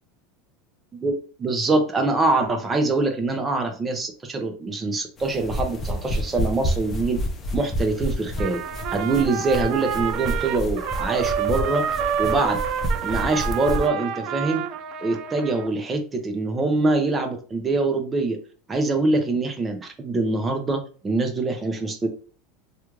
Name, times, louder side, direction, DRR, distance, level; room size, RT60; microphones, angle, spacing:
voice 1, 1.4-7.2 7.5-8.6 8.9-11.8 12.2-12.6 13.0-14.6 15.0-18.4 18.7-22.1, right 3 dB, 20° right, 4 dB, 0.7 m, -24 dB
sound 1, 5.2-13.9, equal, 25° left, 0.6 m, -29 dB
Trumpet, 8.4-15.7, right 8 dB, 50° right, 0.3 m, -28 dB
3.2 x 2.4 x 3.0 m, 0.39 s
supercardioid pair, 135°, 0 cm